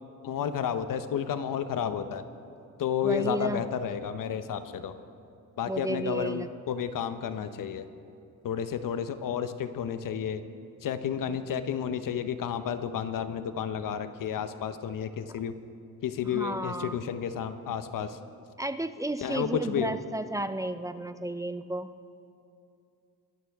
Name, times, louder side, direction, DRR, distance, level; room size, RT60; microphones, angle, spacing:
voice 1, 0.2-2.2 2.8-4.9 5.6-7.9 8.4-10.4 10.8-15.5 16.0-18.2 19.2-20.0, left 8 dB, 65° left, 11 dB, 0.8 m, -31 dB
voice 2, 3.0-3.7 5.7-6.5 11.3-11.4 16.2-17.0 18.6-21.9, right 1 dB, 10° right, 11 dB, 0.3 m, -32 dB
23.0 x 11.0 x 3.5 m, 2.5 s
cardioid pair, 120°, 36 cm